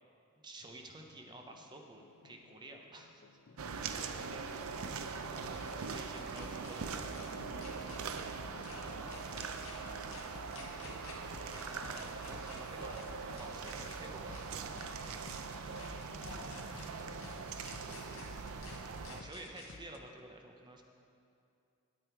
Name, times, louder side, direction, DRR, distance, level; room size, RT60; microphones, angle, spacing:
voice 1, 0.4-3.4 5.3-7.6 11.6-14.7 15.0-15.3 18.5-18.7 19.1-20.8, right 2 dB, 20° right, 3 dB, 0.6 m, -52 dB
sound 1, 0.6-20.2, left 3 dB, 55° left, 0.5 m, -56 dB
sound 2, 1.7-1.8 4.2-6.0 6.4-6.8 7.1-7.3 7.6-8.3 8.6-8.8 9.1-9.7 10.1-10.2 10.5-11.1 11.5-11.6 11.9-12.6 12.9-13.0 13.3-14.0 14.3-14.4 14.7-15.4 15.8-15.9 16.2-16.9 17.2-17.3 17.6-18.2 18.6-18.7 19.0-19.7, left 4 dB, 70° left, 1.6 m, -54 dB
voice 2, 3.6-4.7 8.6-10.9 16.1-17.2, left 1 dB, 85° left, -5 dB, 2.2 m, -55 dB
sound 3, 3.6-19.2, right 5 dB, 75° right, 0.5 m, -42 dB
9.2 x 8.8 x 4.5 m, 2.5 s
head